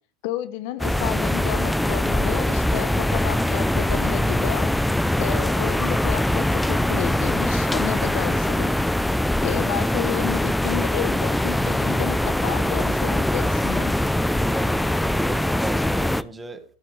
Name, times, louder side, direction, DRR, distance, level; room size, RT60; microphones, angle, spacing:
voice 1, 0.2-4.7 5.2-8.8 9.4-13.9, left 13 dB, 65° left, 0.9 m, -31 dB
sound 1, 0.8-16.2, left 1 dB, 5° left, 0.5 m, -22 dB
voice 2, 14.5-16.6, right 3 dB, 15° right, 1.7 m, -36 dB
14.0 x 8.6 x 3.3 m
hypercardioid pair, 105°, 0 cm